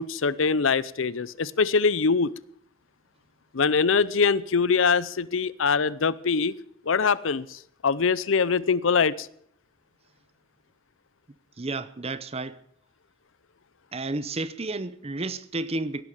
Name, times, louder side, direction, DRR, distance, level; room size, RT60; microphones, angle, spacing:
voice 1, 0.0-2.3 3.5-6.5 6.9-9.3, left 5 dB, 70° left, 0.6 m, -23 dB
voice 2, 11.6-12.6 13.9-16.0, right 2 dB, 30° right, 0.7 m, -31 dB
17.5 x 11.5 x 7.2 m
head